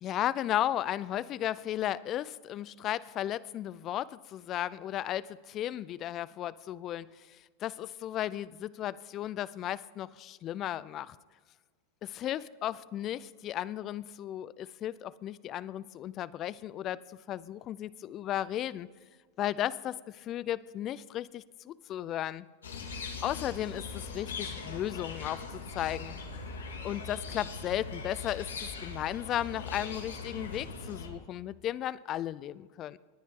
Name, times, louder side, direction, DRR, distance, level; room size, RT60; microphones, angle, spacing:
voice 1, 0.0-11.2 12.0-18.9 19.4-22.5 23.2-26.2 26.8-33.0, left 12 dB, 40° left, 20 dB, 0.5 m, -35 dB
sound 1, 22.6-31.1, left 4 dB, 90° left, 2.0 m, -40 dB
19.0 x 10.0 x 3.7 m, 1.5 s
hypercardioid pair, 105°, 0 cm